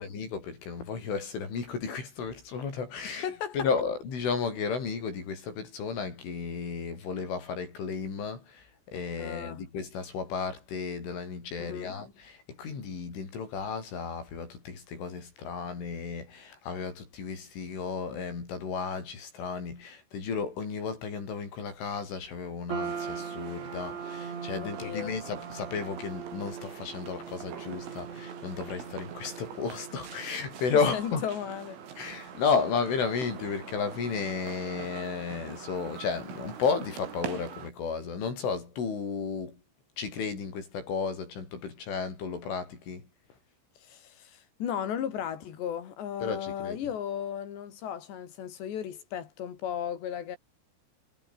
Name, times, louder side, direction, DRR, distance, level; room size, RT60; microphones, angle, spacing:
voice 1, 0.0-3.3 3.5-31.3 32.0-39.6 40.0-43.0 46.2-46.8, left 5 dB, 85° left, 9.5 m, -33 dB
voice 2, 3.2-3.7 9.2-9.7 11.6-12.0 24.6-25.2 30.9-31.8 43.8-50.4, left 9 dB, 65° left, 5.2 m, -35 dB
sound 1, 22.7-37.1, right 6 dB, 70° right, 7.6 m, -43 dB
sound 2, 22.8-37.7, right 8 dB, 85° right, 6.3 m, -45 dB
omnidirectional pair, 5.4 m